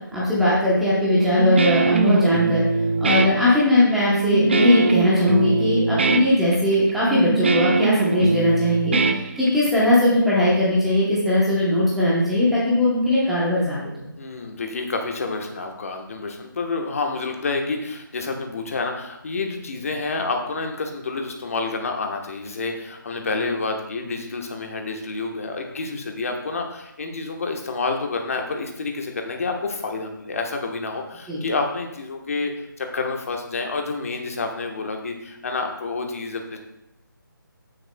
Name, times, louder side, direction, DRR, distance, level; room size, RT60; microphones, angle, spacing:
voice 1, 0.1-2.6 3.0-13.9 31.3-31.4, left 1 dB, ahead, -8 dB, 0.8 m, -19 dB
Guitar, 1.2-9.8, right 4 dB, 30° right, 0.4 m, -22 dB
voice 2, 14.2-36.6, left 3 dB, 40° left, 3 dB, 1.1 m, -29 dB
14.0 x 6.4 x 2.2 m, 0.87 s
figure-of-eight pair, 165°, 12 cm